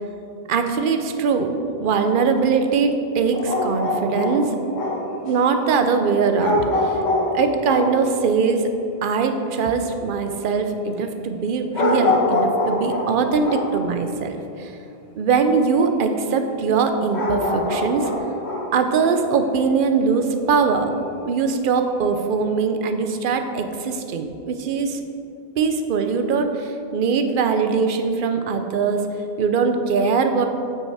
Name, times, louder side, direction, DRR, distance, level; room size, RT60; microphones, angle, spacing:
voice 1, 0.5-1.5 1.8-4.6 5.1-7.0 7.3-8.6 9.0-14.7 15.2-18.1 18.7-20.9 21.2-25.0 25.6-29.1 29.4-30.4, right 5 dB, 55° right, 7 dB, 0.8 m, -21 dB
sound 1, 3.3-5.3 6.4-8.0 11.7-13.8 17.1-18.8, left 2 dB, 75° left, 1.6 m, -23 dB
8.6 x 5.9 x 4.7 m, 2.7 s
omnidirectional pair, 1.1 m